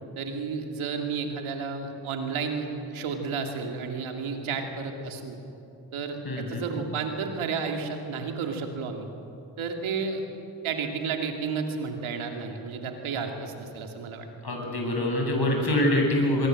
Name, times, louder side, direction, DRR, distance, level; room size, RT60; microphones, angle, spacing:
voice 1, 0.2-5.4 5.9-9.1 9.6-10.2 10.6-14.3, right 5 dB, 85° right, 4 dB, 2.6 m, -32 dB
voice 2, 6.2-6.6 14.4-16.5, left 1 dB, 50° left, 1 dB, 8.0 m, -25 dB
24.0 x 22.5 x 7.8 m, 2.8 s
supercardioid pair, 40°, 47 cm